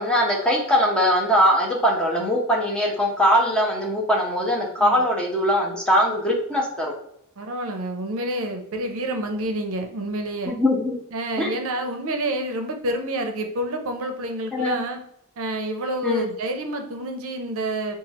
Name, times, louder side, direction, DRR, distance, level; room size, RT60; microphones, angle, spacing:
voice 1, 0.0-6.9 10.5-10.9 11.4-11.5 14.5-14.8 16.0-16.3, equal, 5° left, -2 dB, 0.7 m, -21 dB
voice 2, 7.4-10.6 11.1-15.0 15.4-18.0, right 1 dB, 65° right, 5 dB, 0.5 m, -28 dB
3.1 x 2.3 x 4.0 m, 0.72 s
head